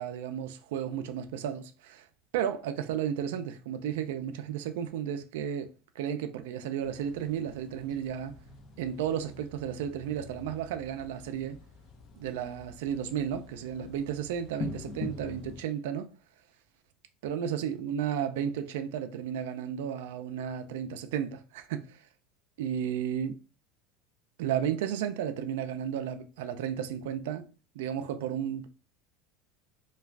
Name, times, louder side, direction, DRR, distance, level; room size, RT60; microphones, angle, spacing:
voice 1, 0.0-2.1 2.3-5.7 6.0-8.4 8.8-11.6 12.2-16.1 17.2-22.0 22.6-23.4 24.4-27.4 27.8-28.8, right 9 dB, 80° right, 0.4 m, -33 dB
sound 1, 6.8-15.6, left 4 dB, 45° left, 0.5 m, -45 dB
2.3 x 2.3 x 3.2 m
supercardioid pair, 115°, 0 cm